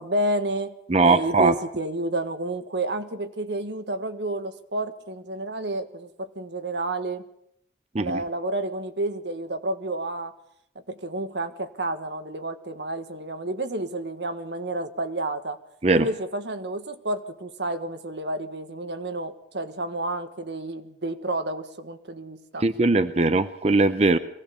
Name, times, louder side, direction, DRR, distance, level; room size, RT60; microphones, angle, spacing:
voice 1, 0.0-0.7 1.0-7.3 8.0-10.3 10.9-15.6 15.9-22.6, right 2 dB, 85° right, 8 dB, 1.6 m, -30 dB
voice 2, 0.9-1.5 7.9-8.2 15.8-16.1 22.6-24.2, right 3 dB, 35° right, 11 dB, 0.7 m, -20 dB
23.0 x 17.0 x 7.0 m, 0.73 s
head